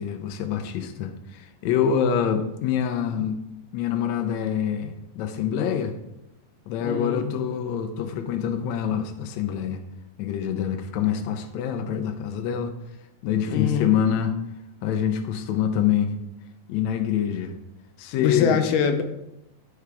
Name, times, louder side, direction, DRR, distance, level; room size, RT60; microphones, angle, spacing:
voice 1, 0.0-3.4 3.7-5.9 6.7-9.8 10.2-12.7 13.2-14.3 14.8-16.1 16.7-17.5 18.0-18.6, left 8 dB, 90° left, 6 dB, 1.5 m, -25 dB
voice 2, 6.8-7.3 13.5-14.0 18.2-19.0, left 7 dB, 75° left, 6 dB, 2.2 m, -23 dB
13.0 x 4.8 x 3.5 m, 0.87 s
omnidirectional pair, 4.1 m